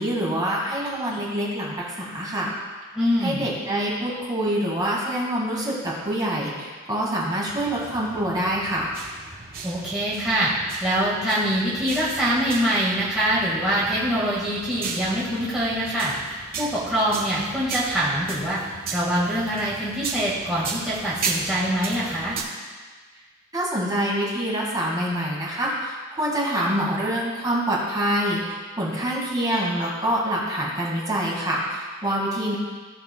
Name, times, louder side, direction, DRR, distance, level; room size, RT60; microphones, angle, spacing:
voice 1, 0.0-2.5 3.2-8.9 23.5-32.6, right 1 dB, 20° right, -5 dB, 1.9 m, -26 dB
voice 2, 2.9-3.5 9.6-10.5 10.8-16.1 16.6-22.3, equal, 5° right, -9 dB, 1.8 m, -24 dB
sound 1, 7.4-22.4, right 4 dB, 45° right, 1.4 m, -36 dB
16.5 x 6.6 x 2.3 m, 1.5 s
head